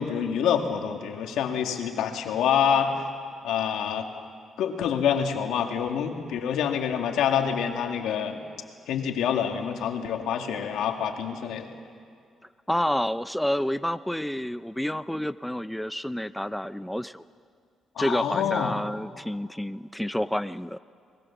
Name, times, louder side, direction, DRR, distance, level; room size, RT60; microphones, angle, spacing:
voice 1, 0.0-2.9 3.4-4.1 4.6-8.4 8.9-11.7 18.0-18.8, left 8 dB, 85° left, 4 dB, 2.1 m, -26 dB
voice 2, 12.7-17.2 18.0-20.8, equal, 5° left, 14 dB, 0.5 m, -29 dB
25.0 x 20.5 x 7.1 m, 2.2 s
cardioid pair, 90°, 0 cm